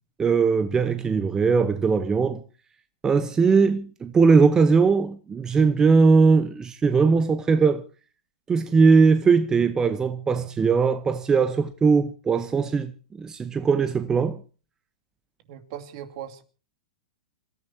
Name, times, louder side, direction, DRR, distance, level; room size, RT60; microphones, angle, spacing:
voice 1, 0.2-2.4 3.0-7.8 8.5-12.9 13.2-14.4, right 5 dB, 15° right, 1.0 m, -20 dB
voice 2, 15.5-16.4, right 10 dB, 50° right, 2.6 m, -38 dB
28.5 x 14.0 x 2.8 m
hypercardioid pair, 140°, 4 cm